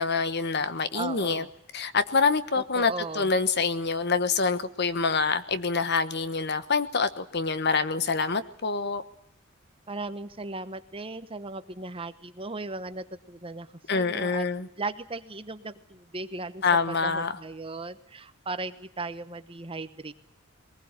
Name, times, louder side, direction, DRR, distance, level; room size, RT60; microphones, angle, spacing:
voice 1, 0.0-1.4 1.7-9.0 13.9-14.7 16.6-17.4, left 4 dB, 55° left, 13 dB, 1.1 m, -26 dB
voice 2, 0.9-1.5 2.7-3.3 9.9-14.5 14.8-20.1, right 3 dB, 25° right, 11 dB, 1.1 m, -37 dB
21.5 x 19.5 x 8.8 m, 0.73 s
head